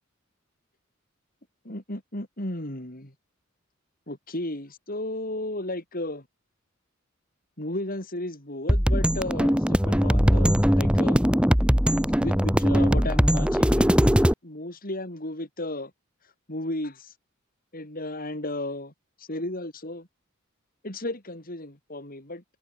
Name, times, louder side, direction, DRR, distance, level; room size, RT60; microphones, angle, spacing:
voice 1, 1.6-3.1 4.1-6.3 7.6-11.2 12.2-15.9 16.5-17.1 17.7-18.9 19.2-20.1 20.8-22.4, left 1 dB, 45° left, 5.7 m, -34 dB
sound 1, 8.7-14.3, equal, 5° right, 2.4 m, -20 dB
head